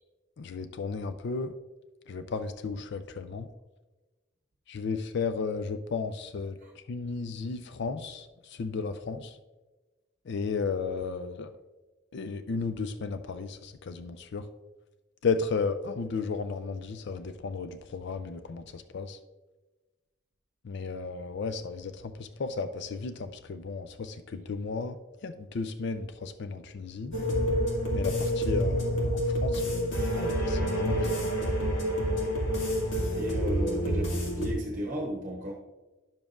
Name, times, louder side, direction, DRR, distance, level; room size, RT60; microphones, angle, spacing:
voice 1, 0.4-1.5 2.1-3.5 4.7-6.6 6.9-9.4 10.3-11.5 12.1-14.5 15.2-19.2 20.6-25.0 25.2-27.1 27.9-31.3, left 4 dB, 60° left, 10 dB, 0.4 m, -34 dB
sound 1, 27.1-34.5, equal, 75° left, 2.2 m, -28 dB
voice 2, 33.1-35.5, equal, 40° right, -1 dB, 0.9 m, -34 dB
10.5 x 7.0 x 2.5 m, 1.2 s
head